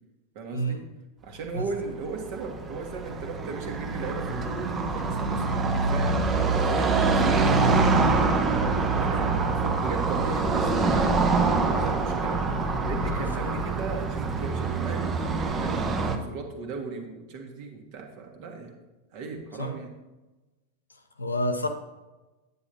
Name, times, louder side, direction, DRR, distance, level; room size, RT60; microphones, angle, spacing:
voice 1, 0.3-0.8 1.2-6.2 6.6-7.8 8.5-11.2 11.7-12.4 12.8-18.8 19.1-19.9, right 4 dB, 45° right, 3 dB, 1.5 m, -36 dB
Car passing by / Traffic noise roadway noise, 1.5-16.2, right 3 dB, 20° right, 0.8 m, -25 dB
voice 2, 13.1-13.5 19.6-19.7 21.2-21.7, equal, 80° left, 6 dB, 0.7 m, -29 dB
9.5 x 8.7 x 2.8 m, 1.1 s
figure-of-eight pair, 90°, 0 cm